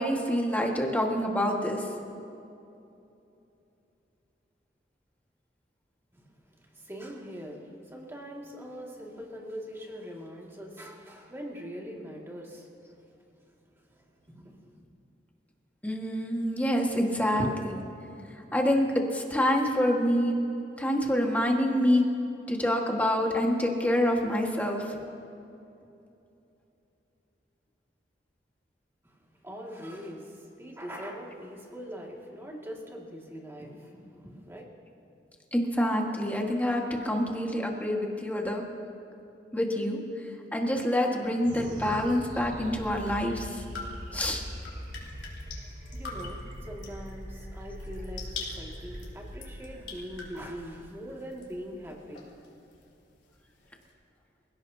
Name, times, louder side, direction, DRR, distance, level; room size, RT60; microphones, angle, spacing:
voice 1, 0.0-1.9 15.8-17.8 18.5-20.3 20.8-22.0 22.5-25.0 35.5-38.6 39.5-40.0 40.5-43.6 44.1-44.4, equal, 10° left, 0 dB, 1.7 m, -26 dB
voice 2, 6.1-13.0 13.4-13.6 13.9-14.8 29.0-34.7 43.8-44.3 44.8-45.2 45.8-52.4, equal, 15° right, -1 dB, 2.2 m, -43 dB
sound 1, 41.4-52.1, equal, 50° right, 2.1 m, -42 dB
sound 2, 42.6-53.9, left 4 dB, 85° left, 3.6 m, -46 dB
27.0 x 17.0 x 2.8 m, 2.8 s
head